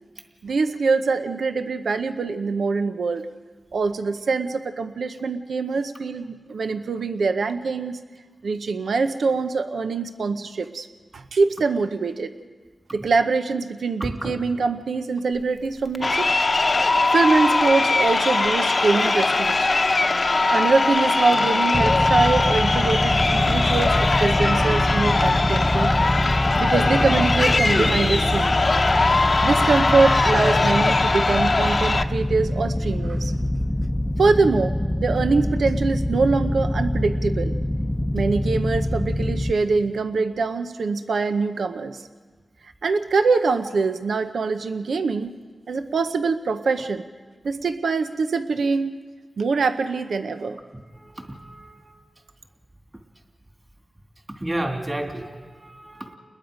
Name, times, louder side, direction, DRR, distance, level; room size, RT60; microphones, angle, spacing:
voice 1, 0.4-3.2 3.7-8.0 8.4-10.9 11.1-12.3 12.9-16.3 17.1-19.8 20.5-25.9 26.6-28.6 29.4-33.3 34.2-34.7 35.0-37.6 38.1-42.0 42.8-45.3 45.7-47.0 47.4-49.0 49.4-50.6, right 4 dB, 80° right, 9 dB, 0.8 m, -23 dB
voice 2, 14.0-14.3 50.9-52.0 54.4-56.2, right 1 dB, 25° right, 3 dB, 2.6 m, -31 dB
Crowd, 15.9-32.0, left 3 dB, 45° left, 0.8 m, -21 dB
sound 1, 21.7-39.5, left 1 dB, 15° left, 0.7 m, -25 dB
29.5 x 21.0 x 5.1 m, 1.4 s
cardioid pair, 60°, 0 cm